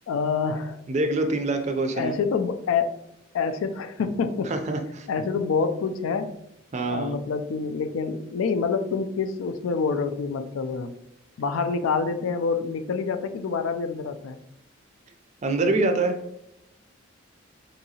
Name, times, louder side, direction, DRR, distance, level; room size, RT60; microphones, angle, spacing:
voice 1, 0.1-0.8 1.9-2.9 3.3-4.5 5.1-6.3 6.9-10.9 11.4-14.4, left 5 dB, 90° left, 10 dB, 0.3 m, -27 dB
voice 2, 0.9-2.1 4.5-5.1 6.7-7.2 15.4-16.2, right 2 dB, 35° right, 6 dB, 0.4 m, -25 dB
3.8 x 2.7 x 2.8 m, 0.81 s
head